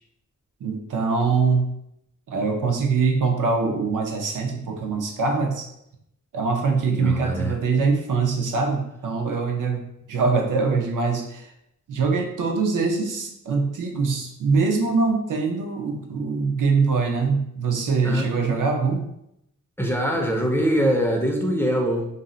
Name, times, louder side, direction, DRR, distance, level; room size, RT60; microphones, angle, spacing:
voice 1, 0.6-1.7 2.3-5.7 6.3-11.5 11.9-19.1, right 4 dB, 90° right, 2 dB, 0.6 m, -23 dB
voice 2, 6.9-7.6 18.0-18.3 19.8-22.1, equal, 10° left, 0 dB, 0.3 m, -23 dB
2.6 x 2.0 x 3.7 m, 0.79 s
wide cardioid pair, 140°, 31 cm